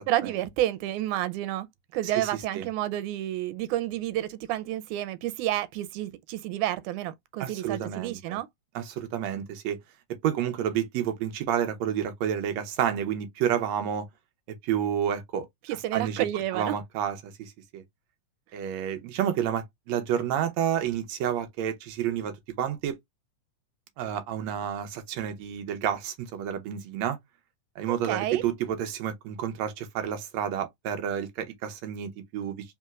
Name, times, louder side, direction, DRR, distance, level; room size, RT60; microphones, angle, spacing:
voice 1, 0.1-1.7 1.9-8.5 15.7-16.8 27.9-28.4, right 14 dB, 90° right, 2.1 m, -30 dB
voice 2, 2.0-2.7 7.4-8.4 8.8-9.8 10.2-14.1 14.6-15.5 15.9-16.3 16.5-17.8 18.5-23.0 24.0-27.2 27.8-32.8, right 9 dB, 70° right, 1.9 m, -30 dB
4.2 x 3.7 x 2.3 m
omnidirectional pair, 3.4 m